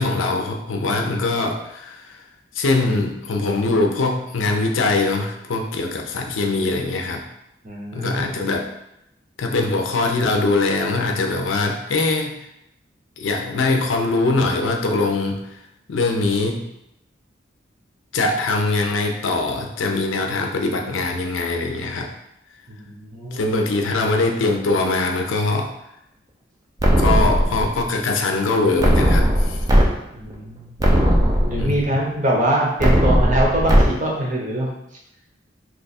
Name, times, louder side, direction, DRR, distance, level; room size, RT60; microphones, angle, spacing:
voice 1, 0.0-2.2 2.5-7.2 7.9-8.7 9.4-12.4 13.2-15.6 15.9-16.6 18.1-22.1 23.3-25.7 27.0-29.7 31.6-31.9, left 3 dB, 85° left, 3 dB, 0.5 m, -22 dB
voice 2, 7.6-8.3 22.7-23.4 30.1-30.7 31.4-34.7, right 1 dB, 40° right, -2 dB, 0.7 m, -23 dB
sound 1, 26.8-27.8 28.8-29.8 30.3-30.4 30.8-31.8 32.8-33.8, equal, 20° right, 0.4 m, -17 dB
3.0 x 2.4 x 4.1 m, 0.84 s
head